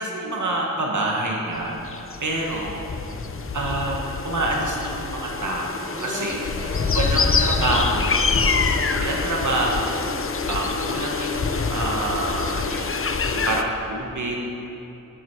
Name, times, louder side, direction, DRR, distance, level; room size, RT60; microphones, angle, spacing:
voice 1, 0.0-2.9 3.5-6.4 6.9-8.5 9.0-10.1 10.5-14.4, right 2 dB, 60° right, -1 dB, 1.2 m, -27 dB
sound 1, 1.6-13.6, left 4 dB, 40° left, 0.5 m, -25 dB
voice 2, 5.9-7.6 8.5-9.4, equal, 10° right, -4 dB, 1.8 m, -38 dB
12.0 x 7.6 x 4.5 m, 3.0 s
wide cardioid pair, 95°, 33 cm